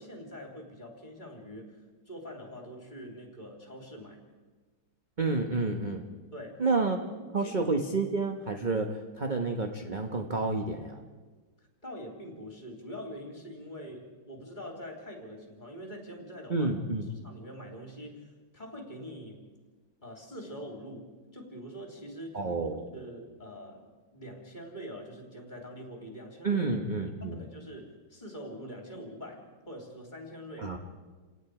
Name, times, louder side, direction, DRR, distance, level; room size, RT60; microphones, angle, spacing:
voice 1, 0.0-1.7 2.1-4.2 6.3-6.6 7.1-7.6 11.8-16.7 17.2-19.5 20.0-26.7 27.2-30.8, equal, 20° left, 1 dB, 3.4 m, -44 dB
voice 2, 5.2-6.1 6.6-7.0 7.3-11.0 16.5-17.1 22.3-22.9 26.4-27.4 30.6-30.8, right 3 dB, 30° right, 3 dB, 1.0 m, -29 dB
29.5 x 18.0 x 4.9 m, 1.4 s
omnidirectional pair, 2.2 m